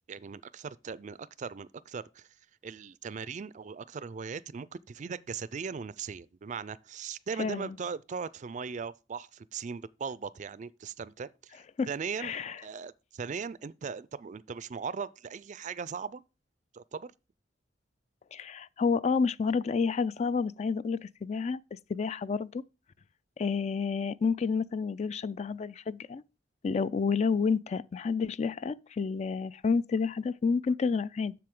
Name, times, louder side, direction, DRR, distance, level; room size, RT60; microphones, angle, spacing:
voice 1, 0.1-2.3 2.6-12.3 12.6-16.2 16.7-17.1, right 5 dB, 40° right, 0.4 m, -39 dB
voice 2, 7.4-7.8 11.8-11.9 12.2-12.6 18.3-22.6 23.4-26.2 26.6-31.3, left 5 dB, 40° left, 0.3 m, -30 dB
7.6 x 6.7 x 3.7 m
head